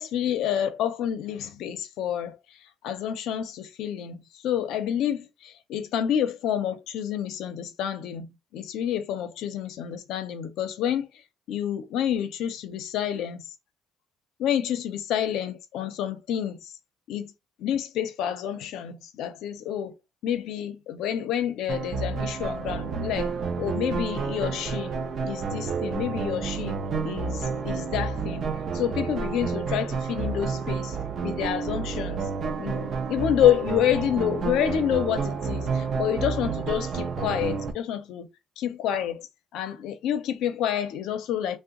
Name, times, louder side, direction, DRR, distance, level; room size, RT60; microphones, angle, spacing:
voice 1, 0.0-2.4 2.8-11.1 11.5-13.5 14.4-16.7 17.1-17.3 17.6-19.9 20.2-23.3 23.6-24.9 25.2-31.0 31.2-32.3 32.6-38.3 38.6-39.3 39.5-41.6, left 10 dB, 75° left, 0.6 m, -28 dB
sound 1, 21.7-37.7, right 5 dB, 50° right, 0.5 m, -30 dB
2.8 x 2.1 x 3.7 m
cardioid pair, 135°, 0 cm